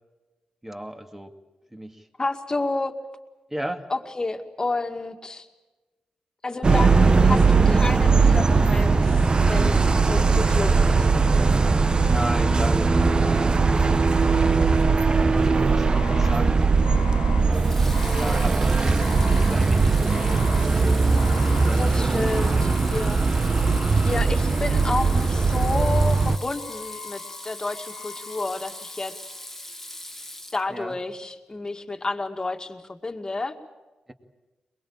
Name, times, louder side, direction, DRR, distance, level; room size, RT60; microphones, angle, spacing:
voice 1, 0.6-1.3 1.7-2.1 3.5-3.9 12.1-13.6 14.9-16.7 17.4-21.0 21.5-22.7 30.7-31.0, right 1 dB, 10° right, 6 dB, 2.3 m, -35 dB
voice 2, 2.2-3.0 3.9-5.5 6.4-11.1 21.8-23.2 24.0-29.2 30.5-33.6, left 2 dB, 30° left, 6 dB, 2.2 m, -30 dB
sound 1, 6.6-26.4, right 4 dB, 40° right, 0.9 m, -20 dB
sound 2, 15.9-29.5, left 10 dB, 85° left, 2.0 m, -42 dB
Water tap faucet / Sink (filling or washing), 15.9-16.2 17.5-30.9, left 1 dB, 10° left, 1.9 m, -40 dB
22.5 x 22.0 x 8.8 m, 1.2 s
cardioid pair, 75°, 2 cm